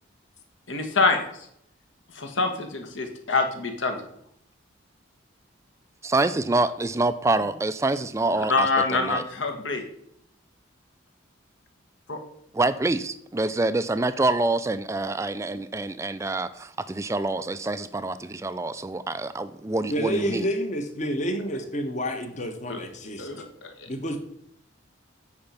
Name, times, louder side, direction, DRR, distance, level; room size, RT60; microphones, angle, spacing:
voice 1, 0.7-1.2 2.2-4.0 8.4-9.8 12.1-12.2 22.7-22.8 23.2-23.7, left 3 dB, 70° left, 5 dB, 1.4 m, -25 dB
voice 2, 6.0-9.2 12.5-20.5, right 2 dB, 15° right, 13 dB, 0.3 m, -26 dB
voice 3, 19.9-23.3 23.9-24.2, equal, 35° left, 6 dB, 1.0 m, -29 dB
8.7 x 5.0 x 5.6 m, 0.71 s
head